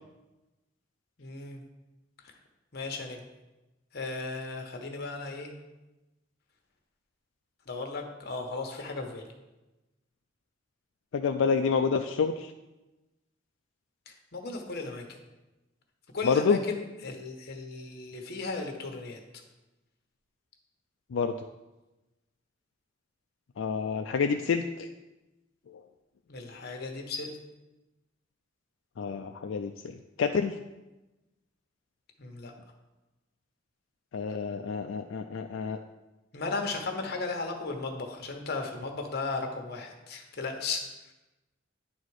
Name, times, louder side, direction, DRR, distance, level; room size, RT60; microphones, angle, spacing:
voice 1, 1.2-1.6 2.2-2.3 2.7-3.2 3.9-5.5 7.7-9.2 14.1-15.2 16.1-19.2 26.3-27.4 32.2-32.5 36.3-40.9, left 3 dB, 55° left, 3 dB, 1.2 m, -36 dB
voice 2, 11.1-12.5 16.2-16.6 21.1-21.3 23.6-24.9 25.7-25.8 29.0-30.5 34.1-35.8, left 5 dB, 85° left, 5 dB, 0.4 m, -28 dB
10.5 x 4.2 x 4.8 m, 1.0 s
head